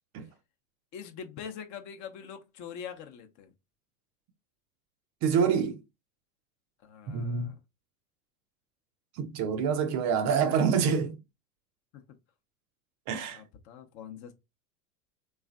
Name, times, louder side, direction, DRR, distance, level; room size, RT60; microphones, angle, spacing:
voice 1, 0.9-3.5 6.8-7.6 13.3-14.3, left 7 dB, 40° left, 0.7 m, -43 dB
voice 2, 5.2-5.8 7.1-7.5 9.2-11.2 13.1-13.4, right 6 dB, 40° right, 0.5 m, -26 dB
3.5 x 3.2 x 2.4 m
hypercardioid pair, 95°, 44 cm